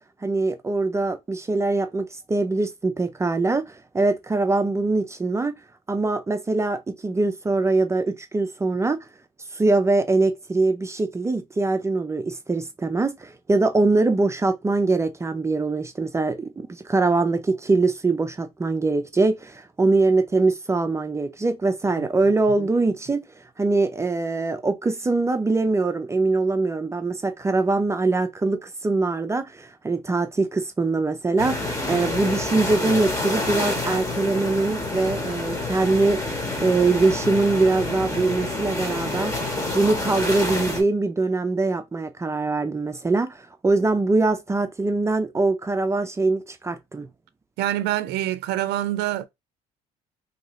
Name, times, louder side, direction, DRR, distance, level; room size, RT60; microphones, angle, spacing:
voice 1, 0.2-5.6 5.9-9.0 9.5-23.2 23.6-36.2 36.6-39.3 39.7-47.1, right 3 dB, 15° right, 0.4 m, -23 dB
sound 1, 31.4-40.8, left 2 dB, 20° left, 1.1 m, -28 dB
voice 2, 47.6-49.3, right 13 dB, 85° right, 0.4 m, -25 dB
2.8 x 2.6 x 3.0 m
cardioid pair, 110°, 17 cm